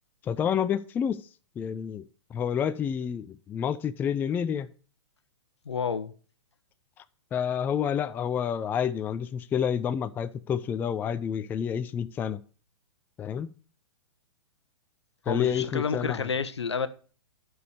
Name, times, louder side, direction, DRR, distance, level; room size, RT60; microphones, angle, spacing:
voice 1, 0.2-1.3 1.6-2.1 2.3-4.7 7.0-7.1 7.3-12.4 13.2-13.5 15.3-16.3, left 8 dB, 15° left, 0.4 m, -29 dB
voice 2, 5.6-6.1 15.3-16.9, left 6 dB, 70° left, 1.0 m, -30 dB
11.0 x 6.3 x 6.5 m
figure-of-eight pair, 110°, 15 cm